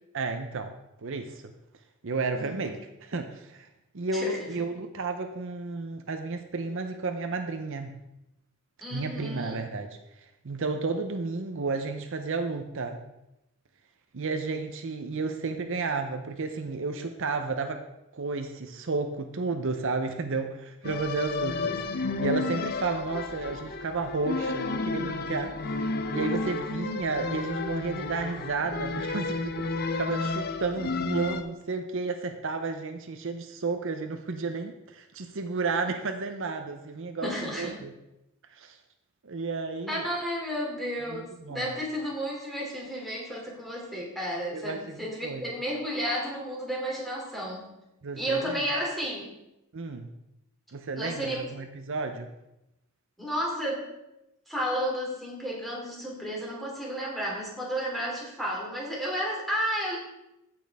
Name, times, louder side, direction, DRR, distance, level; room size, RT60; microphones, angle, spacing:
voice 1, 0.1-1.5 2.0-3.7 3.9-7.9 8.9-9.9 10.2-13.0 14.1-17.8 18.1-21.7 22.2-37.9 38.5-38.8 39.2-40.1 41.1-41.7 44.5-45.5 48.0-48.6 49.7-50.1 50.7-52.3, right 3 dB, 65° right, 6 dB, 0.7 m, -32 dB
voice 2, 2.4-2.8 4.1-4.5 8.8-9.6 37.2-37.8 39.9-47.7 48.2-49.3 51.0-51.5 53.2-53.9 54.5-60.0, equal, ahead, -4 dB, 2.8 m, -32 dB
sound 1, 20.8-31.4, left 3 dB, 45° left, 0.7 m, -32 dB
15.0 x 6.2 x 3.5 m, 0.89 s
head